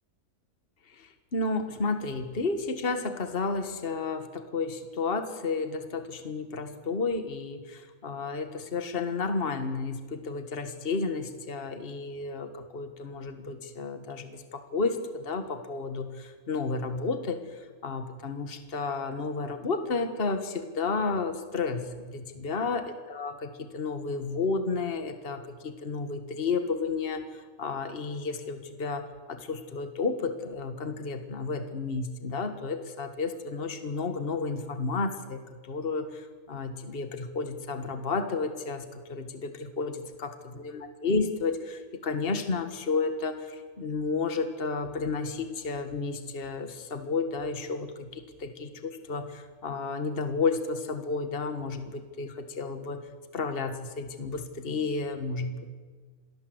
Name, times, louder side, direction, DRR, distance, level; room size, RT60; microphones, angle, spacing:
voice 1, 0.9-53.0 53.3-55.7, left 4 dB, 40° left, 8 dB, 1.8 m, -32 dB
27.0 x 19.0 x 8.0 m, 1.5 s
omnidirectional pair, 1.6 m